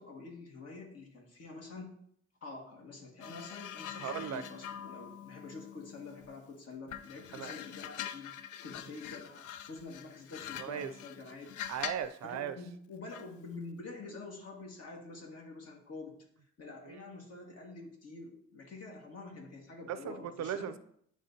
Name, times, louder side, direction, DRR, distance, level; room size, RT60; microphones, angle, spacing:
voice 1, 0.0-1.9 2.4-8.3 8.6-11.5 12.2-16.2 16.6-20.7, left 3 dB, 55° left, 0 dB, 1.9 m, -47 dB
sound 1, 3.2-6.4 6.9-12.2 13.1-13.4, left 10 dB, 80° left, 0.5 m, -44 dB
voice 2, 4.0-4.4 7.3-7.6 10.6-10.9 11.7-12.6 16.8-17.0 19.9-20.8, right 9 dB, 60° right, 12 dB, 0.5 m, -37 dB
10.0 x 3.5 x 2.8 m, 0.67 s
cardioid pair, 90°, 30 cm